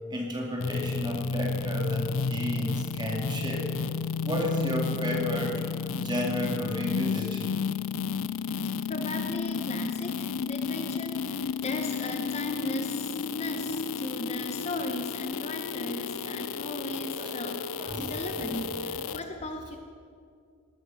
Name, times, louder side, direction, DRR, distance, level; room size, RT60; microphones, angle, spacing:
voice 1, 0.1-3.7 4.2-5.6 6.0-7.5 17.2-17.3 17.8-18.1 18.4-18.6, equal, 20° right, 0 dB, 2.5 m, -32 dB
sound 1, 0.6-19.2, left 5 dB, 70° left, 0.5 m, -32 dB
voice 2, 8.6-17.6 18.1-19.8, left 1 dB, 30° left, 4 dB, 0.9 m, -37 dB
18.0 x 12.5 x 5.7 m, 2.2 s
head